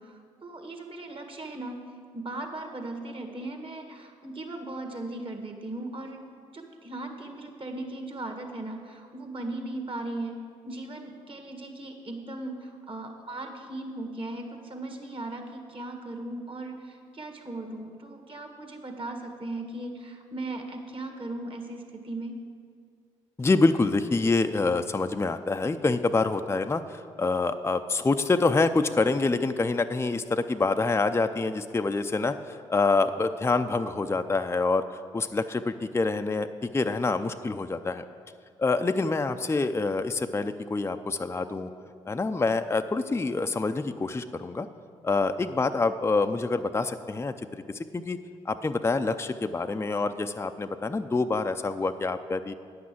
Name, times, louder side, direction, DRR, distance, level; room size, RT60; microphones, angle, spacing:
voice 1, 0.0-1.8 2.1-6.2 6.5-10.4 10.6-22.3, right 2 dB, 40° right, 4 dB, 1.7 m, -38 dB
voice 2, 23.4-38.0 38.6-41.7 42.1-44.7 45.0-48.2 48.5-52.5, left 3 dB, 20° left, 8 dB, 0.5 m, -26 dB
9.3 x 6.1 x 7.5 m, 2.2 s
hypercardioid pair, 45°, 14 cm